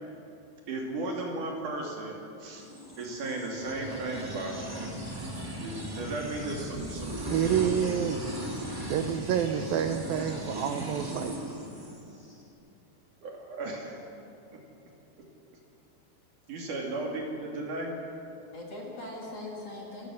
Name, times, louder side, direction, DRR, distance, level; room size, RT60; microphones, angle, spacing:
voice 1, 0.7-2.7 3.0-4.9 5.6-7.8 13.2-14.1 14.5-14.6 16.5-18.0, right 2 dB, 50° right, 0 dB, 3.6 m, -35 dB
sound 1, 2.7-12.4, equal, 10° right, 1.0 m, -38 dB
voice 2, 7.3-8.4 8.9-11.4, right 9 dB, 80° right, 7 dB, 2.2 m, -28 dB
voice 3, 9.5-9.8 18.5-20.1, left 2 dB, 40° left, -2 dB, 2.8 m, -41 dB
28.0 x 15.0 x 6.3 m, 2.7 s
omnidirectional pair, 4.9 m